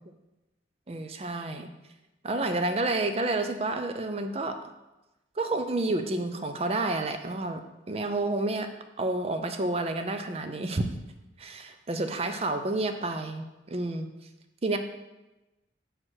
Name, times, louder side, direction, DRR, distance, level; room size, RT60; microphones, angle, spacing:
voice 1, 0.9-1.7 2.2-4.6 5.4-7.6 7.9-8.7 9.0-10.9 11.4-14.1 14.6-14.8, right 2 dB, 35° right, 7 dB, 0.5 m, -29 dB
5.0 x 4.5 x 6.1 m, 1.0 s
head